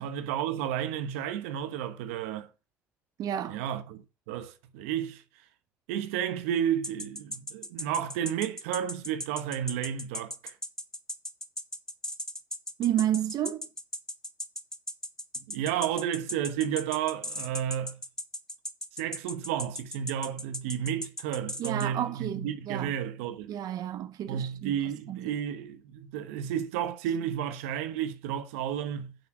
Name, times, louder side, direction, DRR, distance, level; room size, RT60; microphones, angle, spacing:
voice 1, 0.0-2.5 3.5-5.2 5.9-10.6 15.4-18.0 18.9-23.5 24.3-29.2, right 9 dB, 90° right, 1.1 m, -32 dB
voice 2, 3.2-3.6 12.8-13.7 21.6-22.9 23.5-24.7 25.1-25.3, right 11 dB, 65° right, 0.8 m, -31 dB
sound 1, 6.8-21.9, left 1 dB, 10° left, 1.6 m, -37 dB
8.4 x 6.1 x 6.2 m
supercardioid pair, 65°, 7 cm